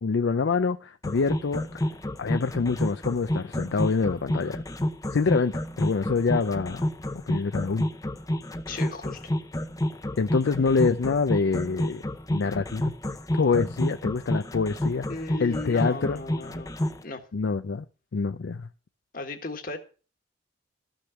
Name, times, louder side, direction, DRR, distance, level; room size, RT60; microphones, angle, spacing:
voice 1, 0.0-1.9 2.2-4.6 5.1-6.9 7.3-7.9 10.2-12.0 12.3-12.9 13.4-15.1 15.4-16.2 17.3-17.9 18.1-18.7, left 4 dB, 70° left, 0.4 m, -26 dB
sound 1, 1.0-17.0, left 1 dB, 20° left, 0.6 m, -29 dB
voice 2, 8.7-9.2 15.1-16.7 17.0-17.2 19.1-19.8, left 3 dB, 45° left, 1.5 m, -36 dB
13.5 x 6.4 x 5.8 m
head